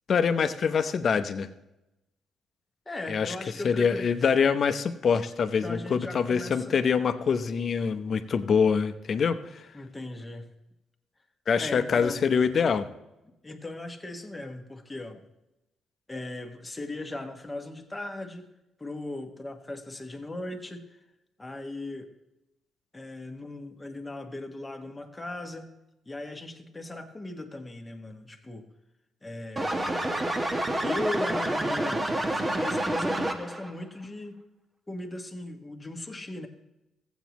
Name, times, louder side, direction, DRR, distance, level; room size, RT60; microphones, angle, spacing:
voice 1, 0.1-1.5 3.1-3.3 3.6-9.7 11.5-12.9, left 6 dB, 50° left, 10 dB, 0.8 m, -25 dB
voice 2, 2.8-4.1 5.6-6.8 9.7-10.5 11.5-12.2 13.4-15.2 16.1-18.5 18.8-21.0 21.4-22.1 22.9-25.7 26.1-28.7 29.2-29.9 30.8-34.4 34.9-36.5, left 2 dB, 15° left, 3 dB, 1.3 m, -38 dB
sound 1, 29.6-33.7, right 1 dB, 20° right, 1.0 m, -28 dB
15.0 x 8.2 x 3.0 m, 0.92 s
cardioid pair, 90°, 0 cm